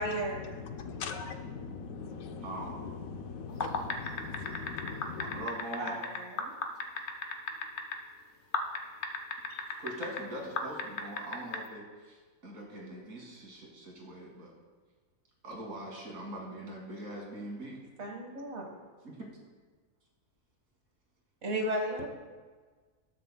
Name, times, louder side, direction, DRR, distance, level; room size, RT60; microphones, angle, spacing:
voice 1, 0.0-0.7 5.8-6.6 18.0-18.7 21.4-22.1, right 1 dB, 50° right, 2 dB, 1.7 m, -35 dB
voice 2, 0.7-2.5 3.1-5.4, left 5 dB, 75° left, 5 dB, 1.2 m, -40 dB
voice 3, 2.4-2.9 5.2-6.0 9.8-12.2 12.4-14.5 15.4-17.8 19.0-19.2, right 1 dB, 75° right, -2 dB, 2.6 m, -42 dB
sound 1, 3.5-8.0 8.5-10.2 10.6-11.6, left 4 dB, 55° left, 1.0 m, -33 dB
19.5 x 6.6 x 2.2 m, 1.4 s
omnidirectional pair, 1.5 m